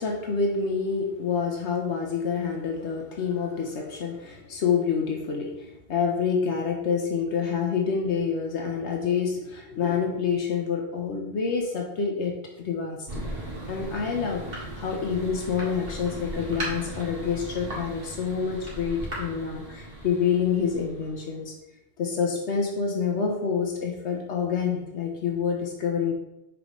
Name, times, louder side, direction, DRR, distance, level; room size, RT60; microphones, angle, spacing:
voice 1, 0.0-13.3 13.7-21.5 22.0-26.1, left 6 dB, 80° left, 1 dB, 1.1 m, -27 dB
Thunder, 13.1-21.4, right 1 dB, 55° right, 2.1 m, -37 dB
6.6 x 5.2 x 3.1 m, 0.90 s
omnidirectional pair, 1.2 m